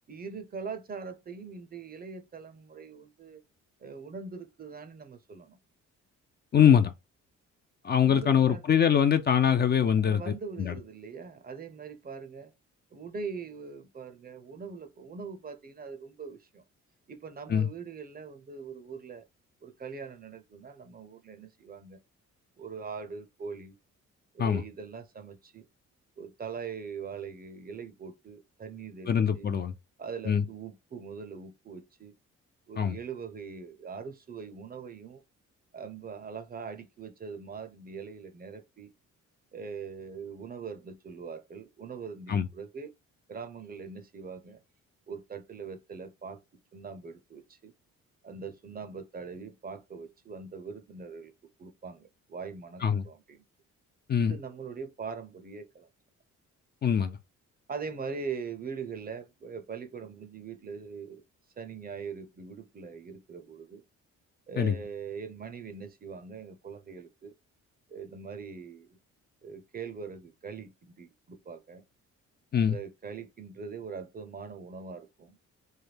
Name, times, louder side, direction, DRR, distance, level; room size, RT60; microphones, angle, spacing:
voice 1, 0.1-3.4 3.8-5.6 8.0-8.6 10.0-12.5 12.9-16.6 17.1-19.3 19.6-22.0 22.6-23.7 24.3-25.7 26.2-29.5 30.0-32.1 32.7-35.2 35.7-38.9 39.5-42.9 43.3-44.6 45.1-46.4 46.7-47.7 48.2-51.3 51.6-53.4 54.3-55.9 57.7-61.2 61.6-63.8 64.5-67.3 67.9-69.0 69.4-71.8 72.7-75.4, right 5 dB, 30° right, 0.5 m, -42 dB
voice 2, 6.5-6.9 7.8-10.7 17.5-17.7 24.4-24.6 29.1-29.7 30.3-30.4 32.8-33.0 42.3-42.5 52.8-53.0 54.1-54.4 56.8-57.2 64.6-64.8 72.5-72.8, left 8 dB, 35° left, 0.4 m, -23 dB
3.2 x 2.1 x 3.3 m
cardioid pair, 90°, 30 cm